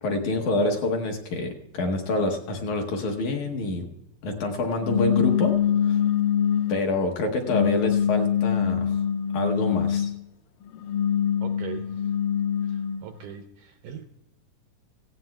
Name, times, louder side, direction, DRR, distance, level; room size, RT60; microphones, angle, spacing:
voice 1, 0.0-3.9 4.2-5.6 5.8-6.0 6.7-9.0 9.3-10.1, left 2 dB, 65° left, 2 dB, 2.1 m, -27 dB
sound 1, 4.8-6.9 7.5-10.2 10.7-13.0, left 9 dB, 80° left, 1.9 m, -24 dB
voice 2, 11.4-12.1 12.6-14.0, right 8 dB, 80° right, 6 dB, 1.8 m, -40 dB
17.5 x 16.5 x 2.3 m, 0.93 s
omnidirectional pair, 4.2 m